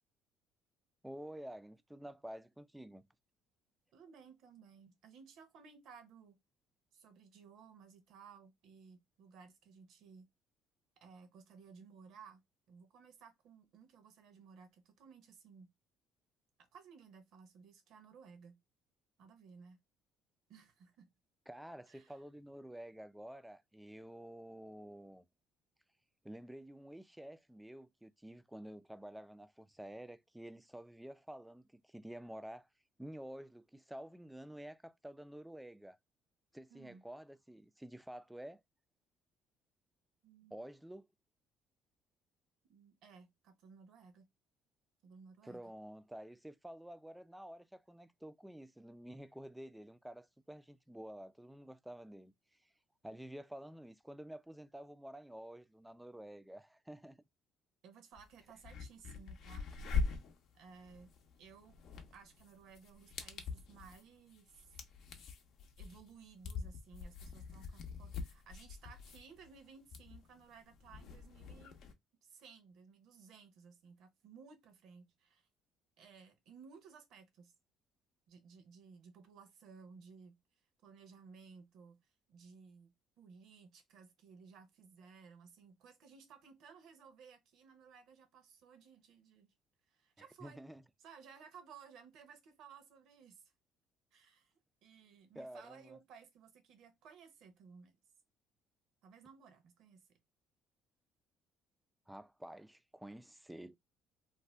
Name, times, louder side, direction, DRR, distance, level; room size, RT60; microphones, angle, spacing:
voice 1, 1.0-3.1 21.5-25.3 26.2-32.7 33.0-36.0 36.5-38.6 40.5-41.1 45.4-52.3 52.6-52.7 53.0-57.2 90.2-90.8 95.3-96.0 102.1-103.8, right 1 dB, 5° right, 0.3 m, -50 dB
voice 2, 3.9-6.4 6.9-10.3 11.0-12.4 12.7-15.7 16.6-18.6 19.2-19.8 20.5-21.1 21.9-22.2 36.7-37.0 40.2-40.7 42.7-44.3 45.0-45.6 57.8-59.7 60.5-61.8 62.1-64.7 65.8-71.8 72.2-75.5 76.0-77.5 78.3-80.4 80.8-82.0 82.3-89.5 89.9-90.6 91.0-93.4 94.1-94.5 94.8-97.9 99.0-100.2, right 5 dB, 70° right, 0.8 m, -58 dB
sound 1, 58.1-58.2 58.6-71.9, left 5 dB, 65° left, 0.6 m, -43 dB
2.6 x 2.1 x 3.2 m
supercardioid pair, 80°, 0 cm